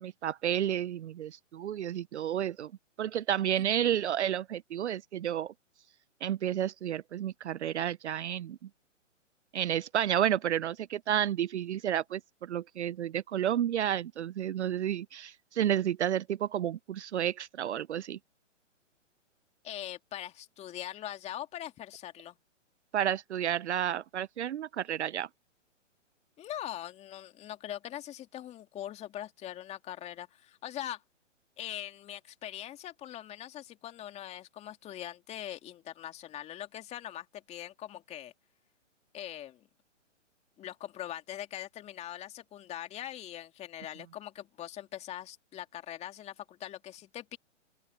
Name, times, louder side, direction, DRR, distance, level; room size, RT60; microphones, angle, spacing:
voice 1, 0.0-2.7 3.0-5.5 6.2-8.6 9.5-18.2 22.9-25.3, right 10 dB, 60° right, 0.7 m, -31 dB
voice 2, 19.6-22.4 26.4-31.0 31.6-38.3 39.1-39.7 40.6-47.4, left 12 dB, 15° left, 2.4 m, -42 dB
open air
hypercardioid pair, 140°, 38 cm